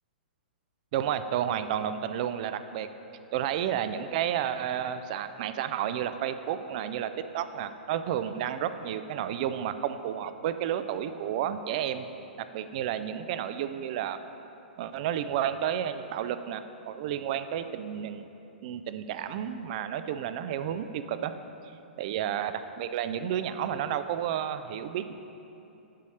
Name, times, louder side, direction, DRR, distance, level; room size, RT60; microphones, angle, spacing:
voice 1, 0.9-2.9 3.3-12.1 12.5-14.2 14.8-18.3 18.6-21.3 22.0-25.1, right 10 dB, 45° right, 11 dB, 0.4 m, -31 dB
7.5 x 4.1 x 6.3 m, 2.9 s
figure-of-eight pair, 110°, 6 cm